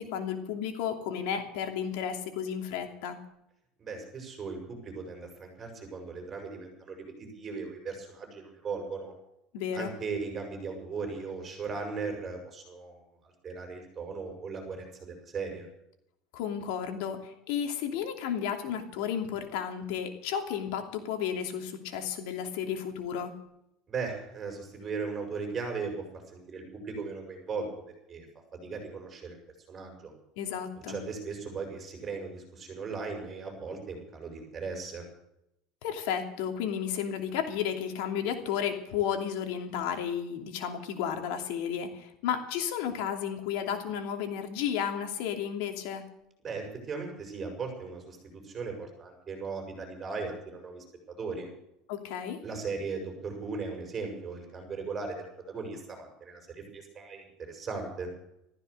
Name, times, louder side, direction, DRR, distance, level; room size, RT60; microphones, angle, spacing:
voice 1, 0.0-3.2 9.5-10.0 16.3-23.3 30.4-31.0 35.8-46.0 51.9-52.4, left 8 dB, 75° left, 5 dB, 2.8 m, -33 dB
voice 2, 3.8-9.1 9.7-13.0 13.4-15.7 23.9-26.0 26.3-27.7 28.1-28.3 28.5-29.4 29.7-30.1 30.9-35.0 46.4-50.8 51.2-51.5 52.4-58.1, right 4 dB, 25° right, 3 dB, 7.1 m, -37 dB
15.0 x 14.0 x 6.7 m, 0.80 s
supercardioid pair, 140°, 0 cm